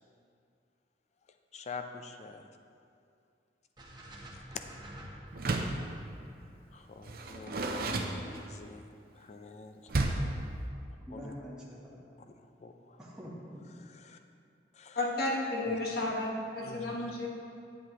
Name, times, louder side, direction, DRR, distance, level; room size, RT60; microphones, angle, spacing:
voice 1, 1.5-2.5 6.7-10.0 11.1-11.3 12.6-13.0 13.9-14.2 14.7-15.0 15.7-15.8 16.6-17.1, left 4 dB, 40° left, 7 dB, 0.4 m, -47 dB
sound 1, 3.8-7.9, equal, 25° right, 0.8 m, -50 dB
Door, 5.3-5.9 7.0-8.7 9.9-10.4, right 2 dB, 55° right, 0.6 m, -32 dB
voice 2, 10.7-12.2 13.0-13.8, equal, 5° right, -7 dB, 1.1 m, -46 dB
voice 3, 14.9-17.3, left 2 dB, 55° left, -3 dB, 1.4 m, -32 dB
9.9 x 7.6 x 3.0 m, 2.4 s
head